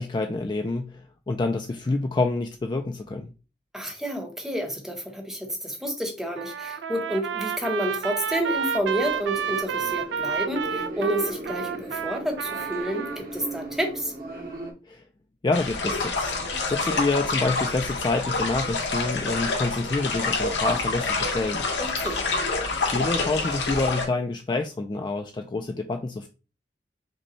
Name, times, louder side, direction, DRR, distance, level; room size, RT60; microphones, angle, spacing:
voice 1, 0.0-3.3 14.9-15.0 15.4-16.3 16.7-21.7 22.9-26.3, left 3 dB, 25° left, 0.3 m, -27 dB
voice 2, 3.7-14.1 21.8-22.3, right 1 dB, 5° right, 0.8 m, -30 dB
Trumpet, 6.4-13.2, right 7 dB, 90° right, 0.4 m, -30 dB
sound 1, 7.9-14.7, right 1 dB, 55° right, 1.1 m, -38 dB
sound 2, 15.5-24.0, left 3 dB, 85° left, 1.2 m, -27 dB
5.1 x 2.2 x 4.2 m
head